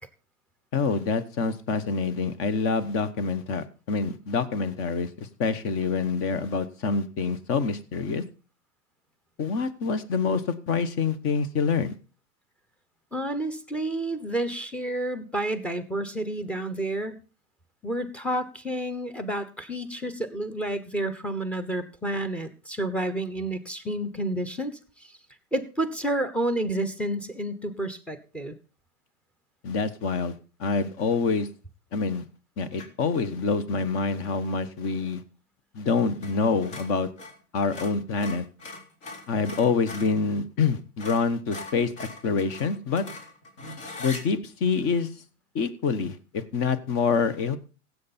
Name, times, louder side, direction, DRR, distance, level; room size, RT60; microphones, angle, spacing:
voice 1, 0.7-8.2 9.4-11.9 29.6-30.3 30.6-31.5 31.9-32.2 32.6-35.2 35.7-37.1 37.5-38.4 39.3-43.0 44.0-45.1 45.5-47.6, left 5 dB, 30° left, 14 dB, 1.1 m, -26 dB
voice 2, 13.1-17.2 17.8-24.8 25.5-28.6, right 1 dB, 5° left, 9 dB, 0.9 m, -30 dB
sound 1, 32.7-33.1 36.2-36.4 36.6-40.2 40.6-40.7 41.0-44.2, left 2 dB, 45° left, 3.7 m, -41 dB
16.0 x 8.1 x 4.3 m, 0.36 s
hypercardioid pair, 140°, 45 cm